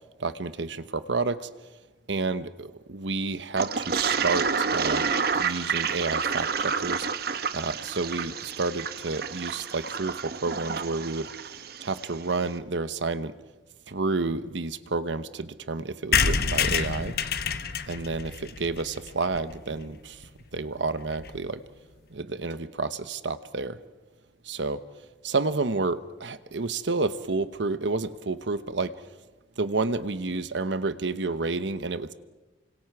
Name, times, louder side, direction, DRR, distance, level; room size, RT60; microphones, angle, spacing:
voice 1, 0.2-1.5 2.1-7.1 7.5-11.3 11.8-13.3 13.9-17.1 17.9-21.6 22.1-23.8 24.4-24.8 25.2-28.9 29.6-32.1, right 3 dB, 80° right, 12 dB, 1.0 m, -30 dB
Toilet flush, 3.6-12.2, right 5 dB, 55° right, 1.0 m, -29 dB
sound 1, 16.1-19.8 20.2-20.3 20.5-20.6 20.8-20.9 21.1-21.4, left 6 dB, 55° left, 1.0 m, -27 dB
29.0 x 25.5 x 4.8 m, 1.2 s
head